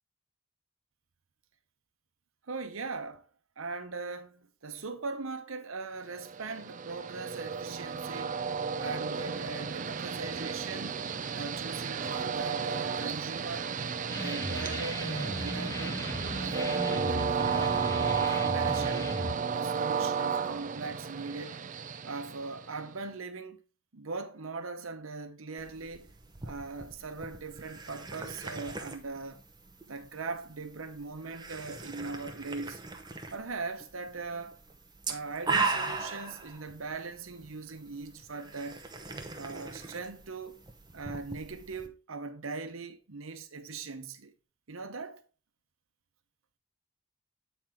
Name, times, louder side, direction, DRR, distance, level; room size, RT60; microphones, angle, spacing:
voice 1, 2.4-3.3 3.6-8.4 8.8-11.0 11.3-13.7 14.1-16.0 16.4-18.0 18.3-19.1 19.5-21.6 22.0-23.6 23.9-26.1 26.4-29.5 29.9-32.8 33.3-34.6 35.1-38.8 39.4-40.6 40.9-44.3 44.7-45.2, right 4 dB, 85° right, 0.9 m, -40 dB
Train, 6.2-22.9, right 6 dB, 40° right, 0.5 m, -33 dB
sound 1, 14.1-19.3, left 1 dB, 15° left, 0.8 m, -37 dB
sound 2, 25.6-41.9, right 4 dB, 20° right, 0.8 m, -39 dB
8.5 x 4.5 x 3.6 m
head